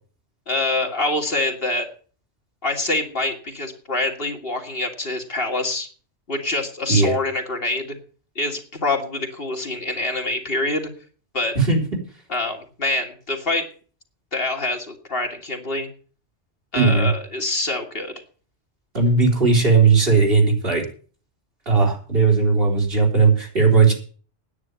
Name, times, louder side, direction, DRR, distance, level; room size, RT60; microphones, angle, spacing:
voice 1, 0.5-1.9 2.6-5.9 6.3-8.0 8.4-10.9 11.3-11.5 12.3-13.6 14.3-15.9 16.7-18.1, left 2 dB, 55° left, 3 dB, 2.3 m, -25 dB
voice 2, 16.7-17.1 18.9-20.9 21.7-23.9, right 4 dB, 55° right, 0 dB, 4.0 m, -17 dB
9.8 x 9.1 x 8.2 m, 0.41 s
omnidirectional pair, 1.2 m